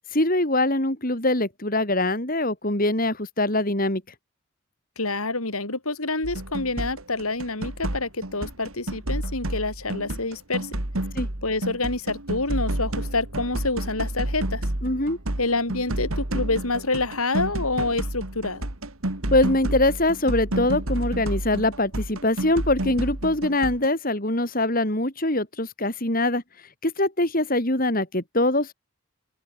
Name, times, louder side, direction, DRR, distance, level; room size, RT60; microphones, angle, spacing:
voice 1, 0.1-4.0 11.2-11.3 14.8-15.2 19.3-26.4 26.8-28.7, left 1 dB, 40° left, 3.8 m, -23 dB
voice 2, 5.0-10.7 11.4-14.6 15.4-18.7, left 3 dB, 85° left, 5.1 m, -27 dB
sound 1, 6.2-23.9, right 1 dB, 75° right, 2.8 m, -30 dB
open air
head